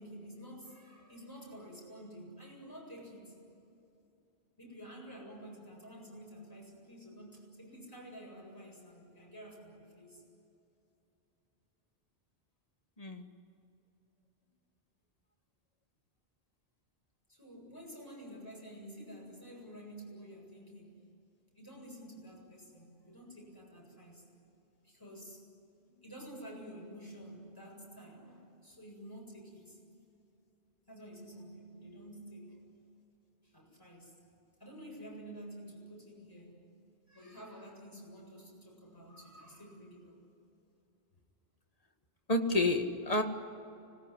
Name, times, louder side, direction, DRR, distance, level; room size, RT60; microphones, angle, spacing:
voice 1, 0.0-3.3 4.6-10.2 17.3-21.0 21.5-24.3 24.8-25.4 25.8-29.8 30.9-32.6 33.4-34.1 34.6-36.6 37.1-40.2, equal, 20° left, -2 dB, 7.7 m, -50 dB
voice 2, 13.0-13.3 42.3-43.2, left 2 dB, 35° left, 4 dB, 1.9 m, -29 dB
25.5 x 20.5 x 10.0 m, 2.7 s
omnidirectional pair, 1.0 m